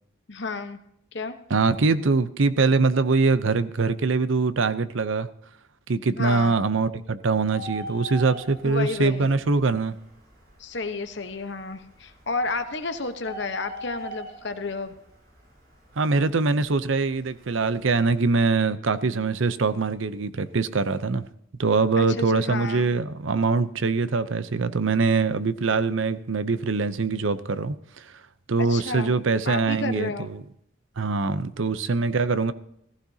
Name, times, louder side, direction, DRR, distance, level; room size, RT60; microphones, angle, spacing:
voice 1, 0.3-0.8 1.1-1.4 6.1-6.6 8.6-9.3 10.6-14.9 22.0-22.9 28.6-29.1 29.5-30.3, left 3 dB, 60° left, 1.1 m, -31 dB
voice 2, 1.5-5.3 5.9-9.9 16.0-21.3 21.6-28.0 28.5-30.4 31.0-32.5, right 4 dB, 75° right, 0.7 m, -23 dB
Bird, 7.3-18.5, equal, 50° right, 5.9 m, -44 dB
15.5 x 14.5 x 2.8 m
head